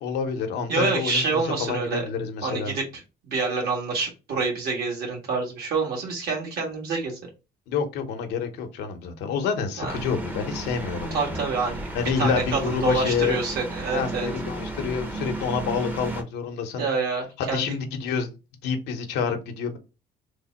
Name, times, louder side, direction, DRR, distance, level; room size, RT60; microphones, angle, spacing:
voice 1, 0.0-2.8 7.7-11.5 11.9-13.4 13.9-16.9 17.4-18.4 18.6-19.8, left 6 dB, 80° left, 0.8 m, -28 dB
voice 2, 0.7-2.0 2.4-7.2 9.8-9.9 11.1-14.3 16.8-17.7, right 4 dB, 65° right, 1.6 m, -27 dB
sound 1, 9.9-16.2, right 1 dB, 10° right, 0.6 m, -34 dB
3.2 x 2.1 x 4.0 m
cardioid pair, 110°, 17 cm